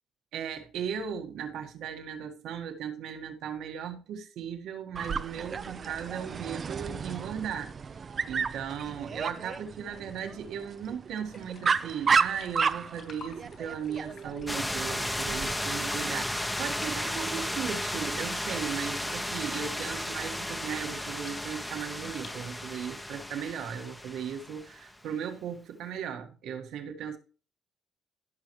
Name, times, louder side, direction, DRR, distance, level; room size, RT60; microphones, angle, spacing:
voice 1, 0.3-7.7 8.2-27.2, right 8 dB, 75° right, 1.6 m, -37 dB
Dog, 4.9-15.5, right 5 dB, 35° right, 0.5 m, -32 dB
sound 1, 11.2-22.5, left 5 dB, 50° left, 3.1 m, -52 dB
sound 2, 14.5-24.9, left 1 dB, 5° left, 0.8 m, -34 dB
15.5 x 5.7 x 3.1 m
cardioid pair, 115°, 0 cm